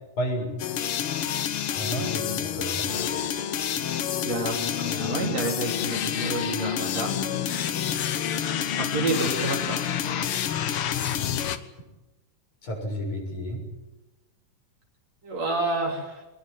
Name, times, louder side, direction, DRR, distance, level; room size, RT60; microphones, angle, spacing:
voice 1, 0.2-0.5 1.7-3.2 12.6-13.6, equal, 75° left, 1 dB, 8.2 m, -31 dB
sound 1, 0.6-11.6, left 9 dB, 55° left, 1.8 m, -28 dB
voice 2, 4.2-7.3 8.8-9.9 15.2-16.2, right 2 dB, 60° right, 1 dB, 4.5 m, -29 dB
24.0 x 21.0 x 9.3 m, 1.1 s
omnidirectional pair, 3.4 m